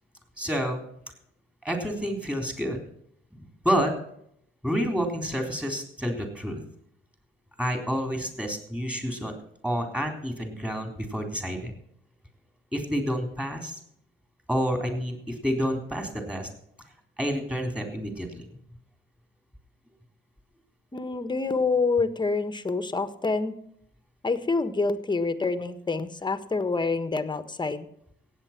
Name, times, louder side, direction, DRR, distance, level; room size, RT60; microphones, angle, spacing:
voice 1, 0.4-0.8 1.6-2.8 3.3-3.9 4.6-6.6 7.6-9.3 9.6-11.7 12.7-13.8 14.5-16.5 17.2-18.6, equal, 5° right, 4 dB, 3.9 m, -29 dB
voice 2, 20.9-23.5 24.2-27.8, left 3 dB, 20° left, 11 dB, 1.4 m, -27 dB
16.5 x 8.8 x 6.0 m, 0.70 s
cardioid pair, 90°, 20 cm